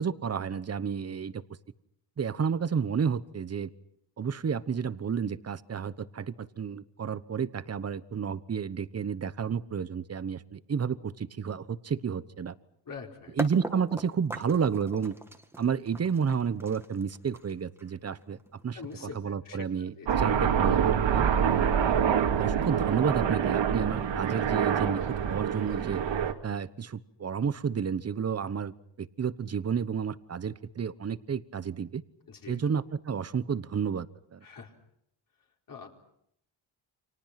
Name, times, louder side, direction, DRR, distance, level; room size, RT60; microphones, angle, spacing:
voice 1, 0.0-1.4 2.2-3.7 4.2-12.5 13.4-15.1 15.6-18.4 18.6-21.3 22.4-26.0 26.4-32.0 32.5-34.4, right 6 dB, 30° right, 15 dB, 1.1 m, -31 dB
voice 2, 12.9-13.3 18.7-19.6 20.0-20.1 32.3-32.6 34.4-34.7 35.7-35.9, left 5 dB, 45° left, 2 dB, 4.5 m, -44 dB
sound 1, 13.4-19.2, right 1 dB, 5° right, 1.9 m, -41 dB
Aircraft, 20.1-26.3, right 8 dB, 65° right, 2.6 m, -26 dB
30.0 x 27.5 x 6.0 m, 0.71 s
wide cardioid pair, 160°, 47 cm